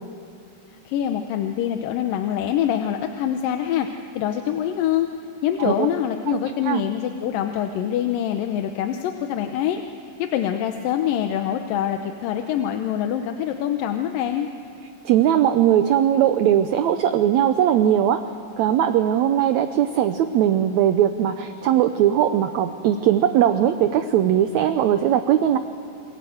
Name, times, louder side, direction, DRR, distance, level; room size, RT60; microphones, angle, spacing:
voice 1, 0.9-3.9 4.2-5.1 5.4-9.8 10.2-14.5, left 10 dB, 85° left, 6 dB, 2.6 m, -24 dB
voice 2, 15.1-18.3 18.6-25.6, right 10 dB, 75° right, 9 dB, 1.8 m, -19 dB
28.5 x 22.5 x 8.0 m, 2.6 s
omnidirectional pair, 3.8 m